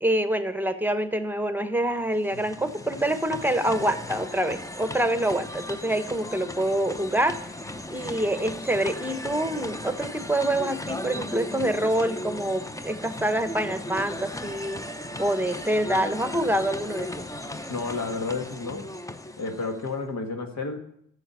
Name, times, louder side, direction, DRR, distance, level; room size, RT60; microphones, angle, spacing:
voice 1, 0.0-7.4 7.9-14.8 15.2-17.3, right 1 dB, 5° right, 10 dB, 1.1 m, -26 dB
sound 1, 2.0-20.0, left 1 dB, 10° left, 0.8 m, -37 dB
voice 2, 17.7-18.9 19.4-20.8, left 3 dB, 60° left, 5 dB, 1.7 m, -31 dB
11.0 x 7.2 x 5.5 m, 0.70 s
supercardioid pair, 40°, 31 cm